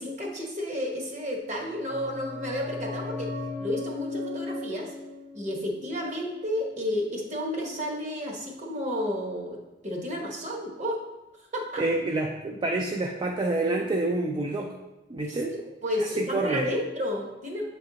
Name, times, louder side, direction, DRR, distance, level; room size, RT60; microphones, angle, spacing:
voice 1, 0.0-3.3 3.6-4.9 5.3-11.0 11.5-11.8 15.3-17.6, left 1 dB, 40° right, 0 dB, 1.1 m, -31 dB
sound 1, 1.5-6.9 7.2-7.3, left 2 dB, 65° right, 1.7 m, -37 dB
voice 2, 11.8-14.7 15.1-15.5 16.0-16.6, right 2 dB, 25° right, 2 dB, 0.4 m, -28 dB
7.4 x 3.4 x 3.9 m, 1.1 s
head